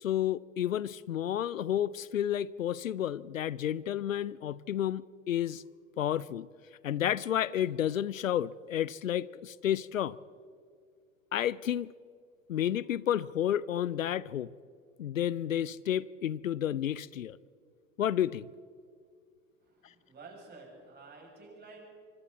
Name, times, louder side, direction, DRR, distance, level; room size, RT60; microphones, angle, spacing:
voice 1, 0.0-5.6 6.0-6.5 6.8-10.2 11.3-11.9 12.5-14.5 15.0-17.4 18.0-18.5, left 11 dB, 80° left, 0.5 m, -31 dB
voice 2, 19.6-21.9, right 3 dB, 25° right, 7.2 m, -51 dB
25.5 x 25.0 x 4.1 m
figure-of-eight pair, 80°, 39 cm